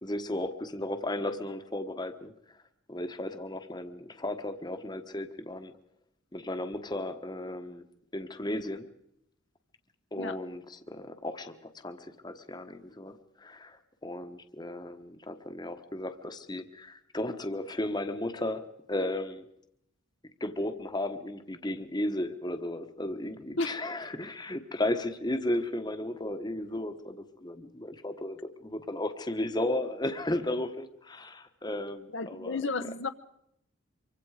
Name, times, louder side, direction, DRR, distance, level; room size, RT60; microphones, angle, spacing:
voice 1, 0.0-2.3 2.9-5.7 6.3-7.8 8.1-8.9 10.1-19.4 20.4-32.6, left 1 dB, 20° left, 8 dB, 1.3 m, -35 dB
voice 2, 32.1-33.1, left 3 dB, 60° left, 9 dB, 1.0 m, -32 dB
25.5 x 24.0 x 5.0 m, 0.78 s
head